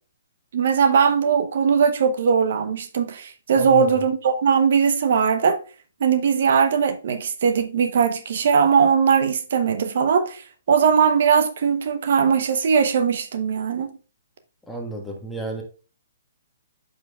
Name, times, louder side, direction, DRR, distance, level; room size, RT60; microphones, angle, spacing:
voice 1, 0.5-5.6 6.0-10.4 10.7-13.9, right 6 dB, 60° right, 0.8 m, -20 dB
voice 2, 3.5-3.9 14.7-15.6, equal, 5° left, 1.4 m, -31 dB
8.7 x 5.4 x 2.3 m
hypercardioid pair, 150°, 0 cm